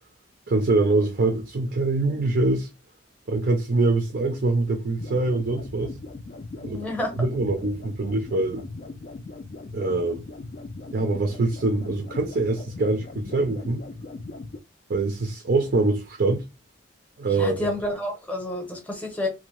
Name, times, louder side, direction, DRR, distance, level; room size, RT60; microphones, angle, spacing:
voice 1, 0.5-2.7 3.3-5.9 6.6-6.8 7.2-8.6 9.7-10.3 10.9-13.8 14.9-16.5 17.2-17.7, right 2 dB, 50° right, 0.4 m, -24 dB
sound 1, 5.0-14.6, left 3 dB, 40° left, 0.3 m, -39 dB
voice 2, 6.7-7.3 17.3-19.3, left 1 dB, 10° left, 0.7 m, -29 dB
2.6 x 2.1 x 3.0 m
head